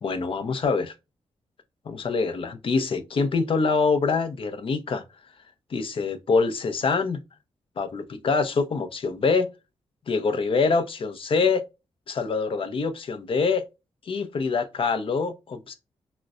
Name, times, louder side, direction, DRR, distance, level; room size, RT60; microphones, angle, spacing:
voice 1, 0.0-0.9 1.9-5.0 5.7-7.2 7.8-9.5 10.1-11.6 12.1-13.6 14.0-15.7, left 4 dB, 55° left, 0.6 m, -25 dB
3.9 x 2.1 x 2.3 m
cardioid pair, 100°, 11 cm